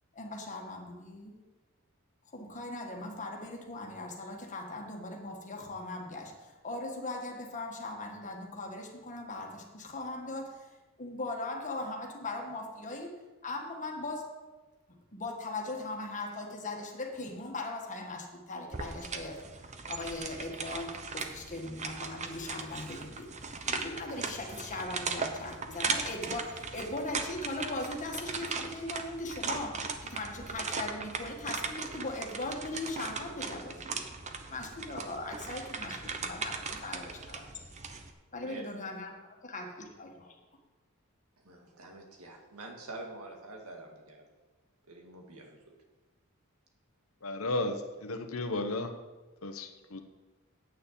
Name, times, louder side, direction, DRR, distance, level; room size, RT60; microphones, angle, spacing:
voice 1, 0.1-1.4 2.3-10.7 11.0-13.1 13.4-14.3 14.9-19.4 19.9-23.3 23.6-34.0 34.5-37.5 38.3-40.4, left 2 dB, 35° left, 1 dB, 1.7 m, -39 dB
sound 1, 18.7-38.1, right 4 dB, 35° right, 0.8 m, -38 dB
voice 2, 41.4-44.3 44.9-45.7, right 2 dB, 85° right, 2 dB, 1.9 m, -46 dB
voice 3, 47.2-48.9 49.4-50.0, left 2 dB, 70° left, 6 dB, 1.0 m, -34 dB
8.9 x 6.7 x 7.3 m, 1.2 s
head